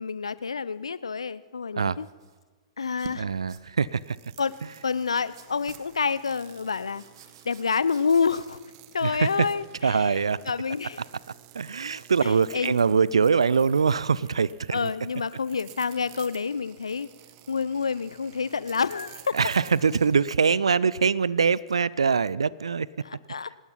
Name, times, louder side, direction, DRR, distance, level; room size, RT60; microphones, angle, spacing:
voice 1, 0.0-2.1 2.8-3.3 4.4-4.6 4.8-7.0 7.4-8.6 8.9-11.0 12.2-12.8 14.7-17.1 17.5-19.4 23.0-23.5, left 5 dB, 70° left, 17 dB, 0.8 m, -28 dB
sound 1, 1.9-2.4 2.8-3.2 3.5-3.7 4.5-4.7 5.3-5.9 6.6-8.8 9.2-9.7, right 8 dB, 55° right, 2.3 m, -48 dB
voice 2, 3.2-4.2 9.0-9.5 9.8-10.4 11.5-14.9 19.3-22.9, right 5 dB, 70° right, 22 dB, 0.7 m, -23 dB
sound 2, 3.9-20.3, right 14 dB, 35° right, 1.6 m, -52 dB
25.5 x 19.0 x 5.8 m, 1.3 s
figure-of-eight pair, 110°, 3 cm